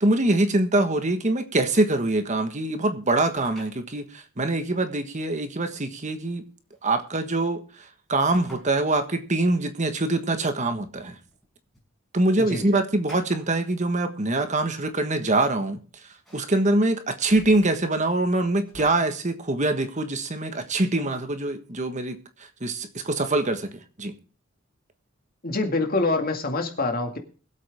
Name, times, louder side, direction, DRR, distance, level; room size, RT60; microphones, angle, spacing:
voice 1, 0.0-6.4 6.8-11.2 12.1-15.8 16.3-24.1, right 2 dB, 35° right, 1.5 m, -24 dB
sound 1, 3.3-3.8 5.1-5.2 6.7-7.1 8.3-8.7 9.1-9.2 10.6-11.8 13.1-13.7 14.7-14.8 14.9-15.1 16.1-16.7 17.1-18.9, equal, ahead, 5.7 m, -48 dB
voice 2, 25.4-27.2, left 3 dB, 45° left, 2.2 m, -25 dB
22.0 x 8.2 x 3.6 m
head